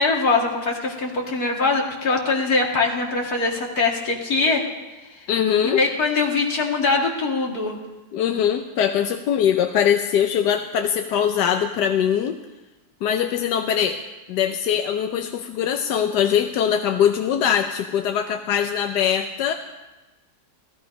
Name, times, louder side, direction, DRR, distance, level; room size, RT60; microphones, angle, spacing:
voice 1, 0.0-4.6 5.7-7.8, left 3 dB, 65° left, 0 dB, 2.6 m, -22 dB
voice 2, 5.3-5.8 8.1-12.4 13.0-14.0 14.3-19.5, left 9 dB, 90° left, 6 dB, 1.3 m, -22 dB
15.0 x 15.0 x 5.2 m, 1.1 s
omnidirectional pair, 1.8 m